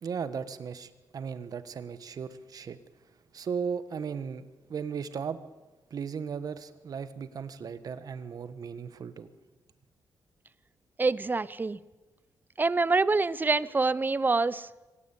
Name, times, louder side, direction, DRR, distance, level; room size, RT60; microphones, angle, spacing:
voice 1, 0.0-2.8 3.3-5.4 5.9-9.3, right 6 dB, 60° right, 12 dB, 1.5 m, -36 dB
voice 2, 11.0-11.8 12.6-14.7, right 3 dB, 25° right, 19 dB, 0.8 m, -26 dB
24.5 x 17.5 x 8.6 m, 1.1 s
cardioid pair, 80°, 7 cm